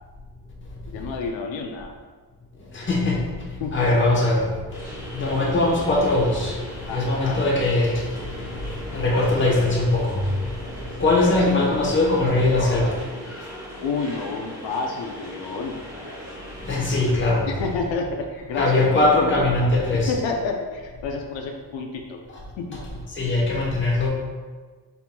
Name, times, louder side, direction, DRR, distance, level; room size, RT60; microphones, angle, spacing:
voice 1, 0.9-1.9 3.6-3.8 6.9-7.4 11.3-11.4 13.8-15.8 17.4-19.4 19.9-22.2 22.6-22.8, left 4 dB, 80° left, 1 dB, 0.6 m, -29 dB
voice 2, 2.7-3.2 3.7-4.5 5.1-6.6 6.9-8.1 8.4-8.5 8.9-10.2 11.0-12.9 16.7-17.5 18.6-20.1 23.2-24.1, left 2 dB, 25° left, -4 dB, 1.0 m, -20 dB
sound 1, 4.7-17.2, equal, 5° right, 1.2 m, -38 dB
5.5 x 4.4 x 2.2 m, 1.4 s
cardioid pair, 165°, 45 cm